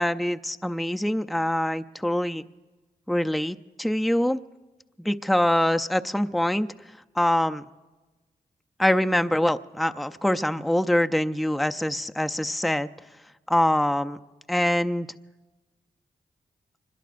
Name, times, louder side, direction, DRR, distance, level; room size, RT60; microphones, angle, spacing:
voice 1, 0.0-2.4 3.1-4.4 5.0-6.7 7.2-7.6 8.8-12.9 13.5-14.2 14.5-15.1, left 1 dB, ahead, 8 dB, 0.5 m, -24 dB
25.0 x 21.0 x 2.6 m, 1.2 s
cardioid pair, 45°, 15 cm